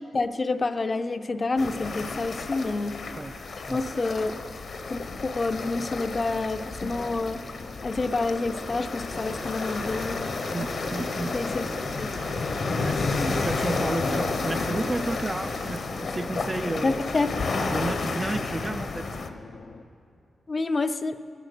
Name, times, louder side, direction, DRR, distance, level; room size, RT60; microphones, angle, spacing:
voice 1, 0.1-3.0 3.7-4.3 4.9-7.4 7.8-10.4 11.3-11.7 12.0-12.1 16.8-17.4 20.5-21.2, left 3 dB, 35° left, 10 dB, 0.5 m, -28 dB
sound 1, 1.6-19.3, left 3 dB, 60° left, 1.0 m, -31 dB
sound 2, 5.5-19.8, left 5 dB, 85° left, 0.5 m, -46 dB
sound 3, 9.1-15.8, right 3 dB, 90° right, 2.7 m, -43 dB
voice 2, 10.5-11.4 12.7-17.0 17.6-19.1, right 2 dB, 20° right, 11 dB, 0.3 m, -32 dB
14.5 x 10.5 x 6.7 m, 2.6 s
cardioid pair, 95°, 0 cm